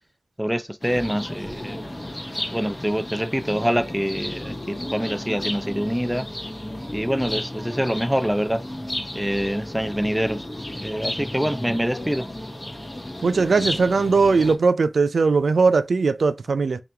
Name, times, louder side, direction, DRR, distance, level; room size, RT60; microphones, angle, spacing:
voice 1, 0.4-1.8 2.5-6.3 6.9-8.6 9.1-10.5 10.7-12.3, equal, 5° right, 0.4 m, -25 dB
sound 1, 0.8-14.6, left 1 dB, 20° left, 0.9 m, -33 dB
voice 2, 13.2-16.8, right 4 dB, 85° right, 0.3 m, -19 dB
3.7 x 3.0 x 3.3 m
wide cardioid pair, 85°, 0 cm